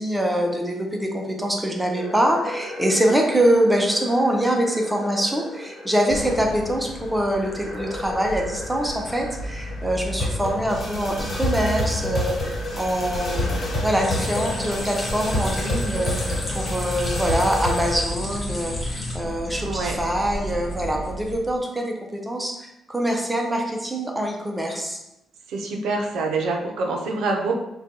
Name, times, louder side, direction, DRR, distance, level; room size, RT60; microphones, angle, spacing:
voice 1, 0.0-25.0, right 1 dB, 5° right, 1 dB, 0.4 m, -24 dB
sound 1, 2.0-18.0, left 1 dB, 45° left, 1.4 m, -31 dB
sound 2, 6.1-21.6, equal, 90° left, 0.3 m, -33 dB
sound 3, 14.0-19.1, left 1 dB, 20° left, 0.8 m, -33 dB
voice 2, 19.6-20.0 25.5-27.5, right 3 dB, 90° right, 2 dB, 0.5 m, -25 dB
3.8 x 2.2 x 2.7 m, 0.87 s
cardioid pair, 140°, 0 cm